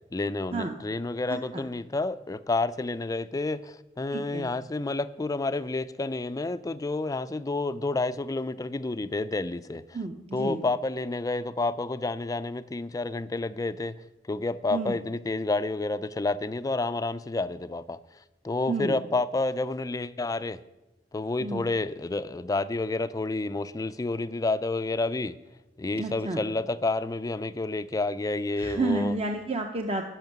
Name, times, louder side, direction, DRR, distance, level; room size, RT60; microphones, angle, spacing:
voice 1, 0.1-9.8 10.3-14.0 14.3-18.0 18.4-20.6 21.1-25.4 25.8-29.2, left 2 dB, 20° left, 0.4 m, -29 dB
voice 2, 1.3-1.6 4.1-4.5 9.9-10.6 14.7-15.0 18.7-19.0 21.4-21.6 25.9-26.4 28.6-30.0, right 3 dB, 35° right, 0.7 m, -30 dB
10.5 x 6.3 x 9.1 m
head